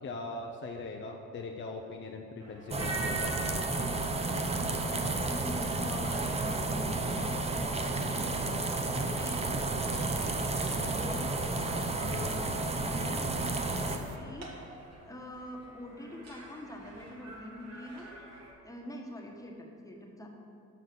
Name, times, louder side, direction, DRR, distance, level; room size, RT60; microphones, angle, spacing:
voice 1, 0.0-3.3 9.9-10.1 10.8-10.9, left 3 dB, 40° left, 1 dB, 0.6 m, -41 dB
sound 1, 2.4-18.5, right 2 dB, 60° right, 1.6 m, -48 dB
sound 2, 2.7-14.0, right 2 dB, 20° right, 0.7 m, -32 dB
sound 3, 4.0-14.2, right 7 dB, 80° right, 0.6 m, -48 dB
voice 2, 5.2-8.3 9.1-9.6 10.0-10.3 10.8-11.3 11.9-14.5 15.0-18.1 18.6-20.3, left 1 dB, 10° left, -1 dB, 1.3 m, -44 dB
6.9 x 6.2 x 5.9 m, 2.5 s
cardioid pair, 90°, 30 cm